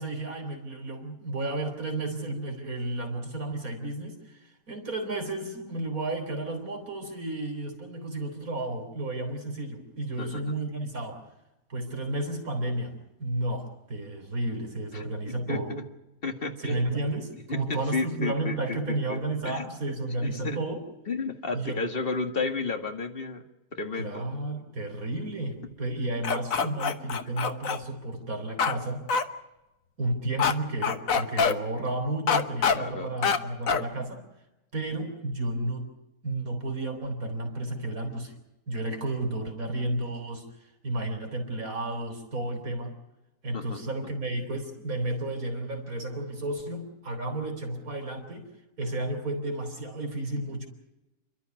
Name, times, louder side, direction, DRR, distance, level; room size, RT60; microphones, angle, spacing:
voice 1, 0.0-11.3 11.7-15.7 16.6-20.8 21.5-21.8 24.0-29.0 30.0-34.2 34.7-35.9 36.2-38.3 38.7-43.0 43.4-48.5 48.8-50.7, right 2 dB, 70° right, 3 dB, 3.9 m, -32 dB
voice 2, 10.2-10.5 14.9-15.8 16.2-16.8 17.5-19.2 19.4-19.6 20.2-20.6 21.1-23.4 23.7-24.3 32.8-33.1 43.5-43.8, left 3 dB, 40° left, 6 dB, 2.0 m, -32 dB
sound 1, 26.2-27.8 28.6-28.7 29.1-29.2 30.4-30.5 30.8-31.5 32.3-32.8 33.2-33.4 33.7-33.8, left 6 dB, 65° left, 1.6 m, -24 dB
29.5 x 12.0 x 9.4 m, 0.99 s
omnidirectional pair, 1.6 m